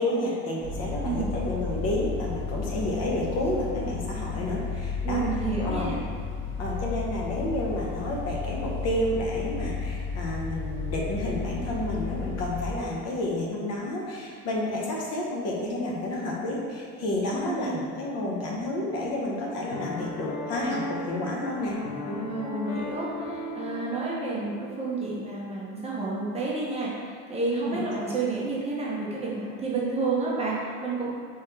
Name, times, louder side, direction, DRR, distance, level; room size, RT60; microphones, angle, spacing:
voice 1, 0.0-5.9 6.6-21.8 22.0-22.2 27.6-27.8, left 1 dB, 50° left, -3 dB, 0.9 m, -30 dB
sound 1, 0.6-12.7, left 5 dB, 5° left, 1.2 m, -33 dB
voice 2, 5.0-6.0 17.3-17.8 22.2-31.1, right 3 dB, 20° right, -6 dB, 0.8 m, -30 dB
Piano, 19.7-25.0, left 1 dB, 80° left, 1.2 m, -36 dB
3.5 x 3.4 x 4.4 m, 2.2 s
cardioid pair, 145°, 32 cm